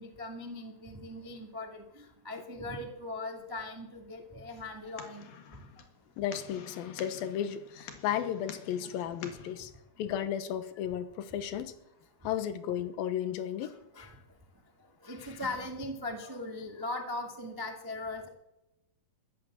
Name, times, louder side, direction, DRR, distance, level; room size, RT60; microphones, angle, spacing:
voice 1, 0.0-5.2 13.6-14.1 15.0-18.3, left 2 dB, 35° right, 3 dB, 0.3 m, -39 dB
sound 1, 4.5-9.5, left 6 dB, 60° left, 3.0 m, -49 dB
voice 2, 6.2-9.7 10.0-11.7 12.2-13.7, left 10 dB, 75° left, 12 dB, 2.7 m, -34 dB
14.0 x 11.5 x 7.5 m, 0.89 s
omnidirectional pair, 4.4 m